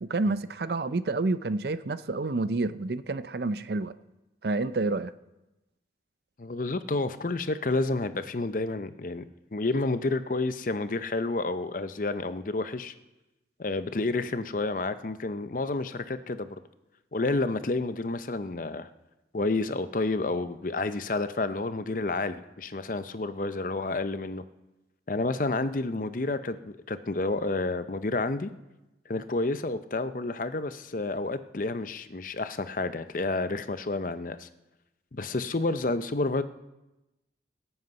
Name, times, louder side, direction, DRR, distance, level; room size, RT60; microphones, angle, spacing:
voice 1, 0.0-3.9 4.4-5.1, right 3 dB, 60° right, 0.5 m, -29 dB
voice 2, 6.4-9.2 9.5-12.9 13.6-16.6 17.1-18.9 19.3-24.4 25.1-28.5 29.1-34.5 35.1-36.4, left 2 dB, 45° left, 0.6 m, -30 dB
23.5 x 8.1 x 5.3 m
head